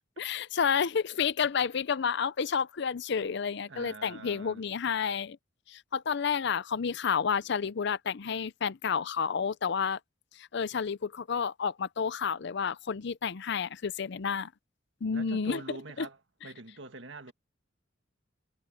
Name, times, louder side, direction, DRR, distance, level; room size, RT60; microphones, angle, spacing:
voice 1, 0.2-5.4 5.7-10.0 10.4-14.5 15.0-15.6 16.0-16.1, left 6 dB, 65° left, 0.6 m, -30 dB
voice 2, 3.7-4.6 15.1-17.3, right 3 dB, 70° right, 1.8 m, -44 dB
head